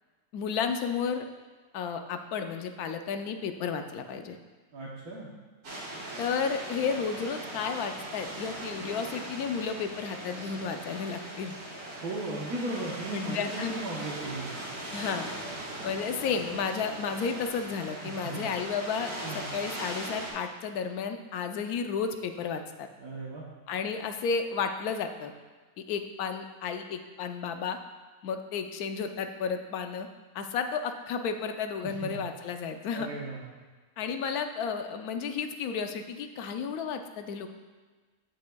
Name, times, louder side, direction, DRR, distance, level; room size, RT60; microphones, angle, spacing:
voice 1, 0.3-1.3 1.7-4.4 6.2-11.6 13.1-13.7 14.9-15.3 15.8-22.9 23.7-25.3 25.8-27.8 28.2-30.1 30.3-33.1 34.0-37.5, left 6 dB, 85° left, 7 dB, 1.1 m, -32 dB
voice 2, 4.7-5.3 12.0-14.6 18.0-18.7 19.2-19.5 23.0-23.5 31.8-32.1 32.9-33.5, right 2 dB, 85° right, -5 dB, 1.5 m, -37 dB
sound 1, 5.6-20.3, right 1 dB, 65° right, 2.1 m, -40 dB
15.5 x 5.3 x 2.3 m, 1.4 s
omnidirectional pair, 1.6 m